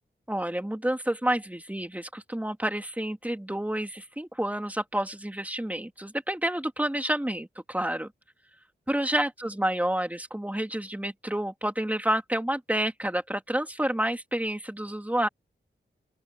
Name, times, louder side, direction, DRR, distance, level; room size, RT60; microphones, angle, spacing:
voice 1, 0.3-8.1 8.9-15.3, right 1 dB, 10° right, 2.9 m, -29 dB
open air
wide cardioid pair, 85°, 19 cm